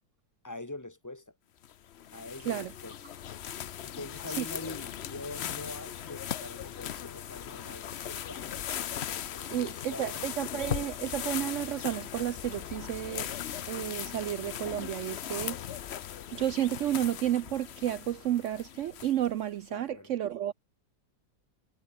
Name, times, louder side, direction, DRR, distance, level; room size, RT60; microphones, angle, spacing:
voice 1, 0.4-1.3 2.1-3.0 3.8-8.5 9.3-10.2 19.7-20.1, left 2 dB, 10° left, 1.9 m, -44 dB
sound 1, 1.6-19.4, left 10 dB, 60° left, 0.7 m, -38 dB
voice 2, 9.5-13.3 13.7-15.6 16.3-20.5, right 12 dB, 80° right, 0.6 m, -31 dB
omnidirectional pair, 1.9 m